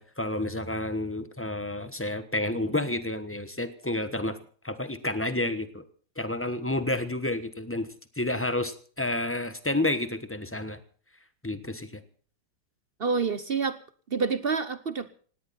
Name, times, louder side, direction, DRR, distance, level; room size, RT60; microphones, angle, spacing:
voice 1, 0.0-4.4 4.6-5.8 6.2-7.9 8.1-10.8 11.4-12.0, left 1 dB, 10° left, 11 dB, 0.9 m, -30 dB
voice 2, 13.0-13.8 14.1-15.1, right 5 dB, 45° right, 13 dB, 0.8 m, -27 dB
18.5 x 17.5 x 4.2 m, 0.44 s
omnidirectional pair, 2.0 m